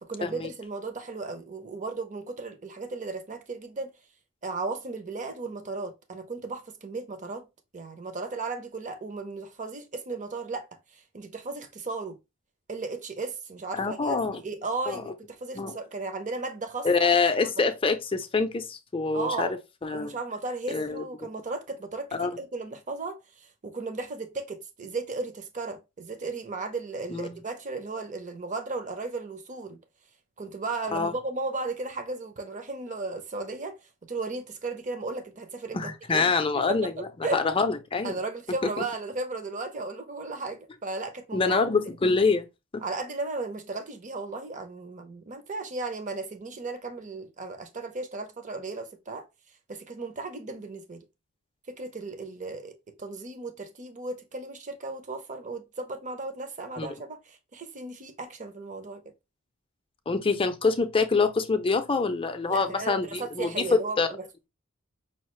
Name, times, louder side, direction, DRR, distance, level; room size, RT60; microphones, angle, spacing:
voice 1, 0.0-3.9 4.4-7.5 7.7-10.7 11.1-12.2 12.7-17.1 17.4-17.5 19.1-19.6 19.9-29.8 30.4-33.8 34.1-37.4 38.0-41.6 42.8-49.2 49.7-51.0 51.7-52.7 53.0-59.0 62.5-64.5, right 3 dB, 35° right, 0.7 m, -35 dB
voice 2, 13.8-14.4 14.9-15.0 15.5-15.8 16.8-19.6 19.8-20.1 20.7-21.0 22.2-22.3 27.1-27.3 30.9-31.1 35.7-38.1 41.3-42.4 42.7-42.8 56.8-56.9 60.1-64.1, left 4 dB, 25° left, 0.5 m, -25 dB
5.5 x 2.4 x 3.1 m
head